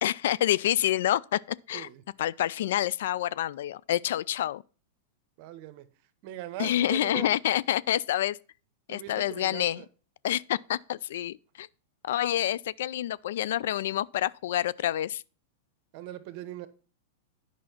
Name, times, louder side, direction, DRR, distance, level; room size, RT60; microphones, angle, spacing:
voice 1, 0.0-1.9 2.2-4.6 6.6-8.4 8.9-9.8 10.2-11.7 12.0-15.2, left 12 dB, 70° left, 0.3 m, -28 dB
voice 2, 5.4-5.9 6.2-7.3 8.9-9.9 15.9-16.7, right 14 dB, 50° right, 1.0 m, -40 dB
8.8 x 5.5 x 5.7 m
hypercardioid pair, 135°, 0 cm